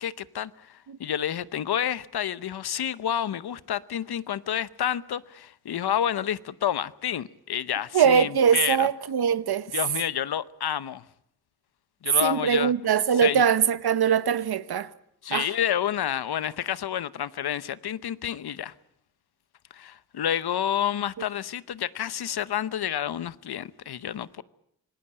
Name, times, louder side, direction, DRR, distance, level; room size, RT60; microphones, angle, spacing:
voice 1, 0.0-8.9 9.7-11.0 12.0-12.7 13.2-13.4 15.2-18.7 19.7-24.4, left 10 dB, 90° left, 0.9 m, -29 dB
voice 2, 7.9-9.7 12.2-14.9 15.3-15.5, right 8 dB, 80° right, 1.1 m, -22 dB
26.0 x 19.0 x 8.8 m
cardioid pair, 65°, 37 cm